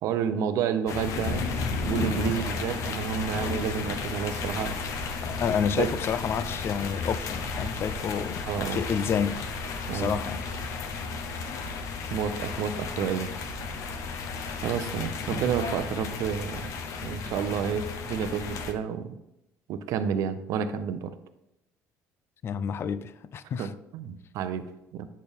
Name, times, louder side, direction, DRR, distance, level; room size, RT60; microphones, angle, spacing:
voice 1, 0.0-1.5 1.8-4.8 5.8-5.9 8.5-8.8 9.9-10.2 12.1-13.3 14.6-16.7 17.0-19.1 19.7-21.1 23.6-25.1, right 8 dB, 70° right, 0.6 m, -30 dB
sound 1, 0.9-18.7, left 4 dB, 65° left, 0.8 m, -33 dB
voice 2, 5.2-9.4 9.9-10.4 22.4-23.7, left 7 dB, 45° left, 0.4 m, -29 dB
8.4 x 4.3 x 3.4 m
cardioid pair, 105°, 6 cm